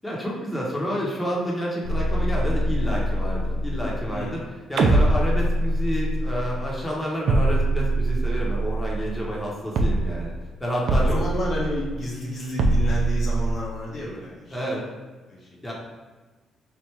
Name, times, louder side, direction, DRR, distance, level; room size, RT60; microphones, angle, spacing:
voice 1, 0.0-10.3 10.6-11.2 14.5-14.8 15.6-15.7, equal, 10° left, -5 dB, 1.0 m, -29 dB
sound 1, 1.8-4.4 4.8-6.9 7.3-9.5 9.8-10.4 10.9-12.1 12.6-13.5, right 1 dB, 70° right, 0.4 m, -23 dB
voice 2, 11.0-14.6 15.3-15.5, left 1 dB, 50° left, -4 dB, 1.1 m, -31 dB
3.3 x 2.6 x 4.5 m, 1.3 s
cardioid pair, 90°, 0 cm